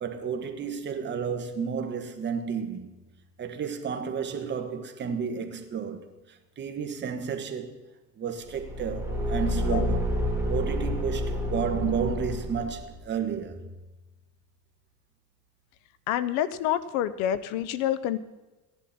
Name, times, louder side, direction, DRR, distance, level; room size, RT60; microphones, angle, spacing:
voice 1, 0.0-2.9 3.4-7.7 8.2-10.1 10.5-13.7, right 6 dB, 35° right, 1.4 m, -32 dB
Car / Engine, 8.4-13.0, left 1 dB, 10° right, 2.2 m, -29 dB
voice 2, 16.1-18.2, left 11 dB, 85° left, 0.8 m, -27 dB
15.5 x 10.5 x 4.3 m
cardioid pair, 135°, 32 cm